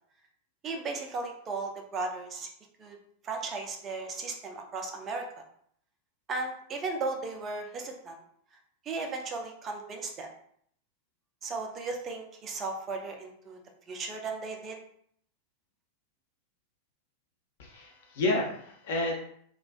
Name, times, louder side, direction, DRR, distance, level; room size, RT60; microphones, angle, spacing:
voice 1, 0.6-2.5 2.8-3.0 3.2-5.2 6.3-8.2 8.9-10.3 11.4-13.6 13.9-14.8, right 3 dB, 25° right, 3 dB, 0.4 m, -36 dB
voice 2, 17.6-19.1, left 2 dB, 55° left, 0 dB, 0.6 m, -30 dB
2.3 x 2.2 x 2.3 m, 0.66 s
figure-of-eight pair, 90°, 0 cm